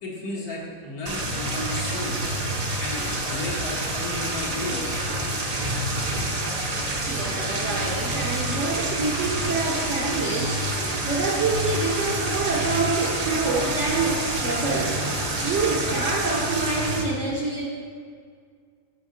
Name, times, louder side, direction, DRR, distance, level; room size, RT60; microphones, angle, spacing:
voice 1, 0.0-2.2 2.8-4.9, left 2 dB, 75° left, -4 dB, 1.8 m, -33 dB
sound 1, 1.1-17.0, right 1 dB, 40° right, 0.6 m, -27 dB
voice 2, 7.1-15.1 15.4-17.7, right 3 dB, 60° right, -3 dB, 1.0 m, -27 dB
7.0 x 4.6 x 5.0 m, 2.1 s
omnidirectional pair, 1.6 m